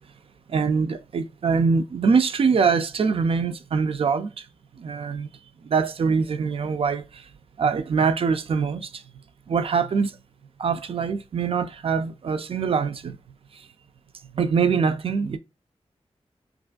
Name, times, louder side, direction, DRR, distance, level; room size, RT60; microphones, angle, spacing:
voice 1, 0.5-4.5 4.8-5.3 5.6-7.2 7.6-9.0 9.5-10.1 10.6-13.2 14.3-15.4, right 5 dB, 60° right, 0.4 m, -23 dB
2.9 x 2.5 x 2.3 m
wide cardioid pair, 80°, 11 cm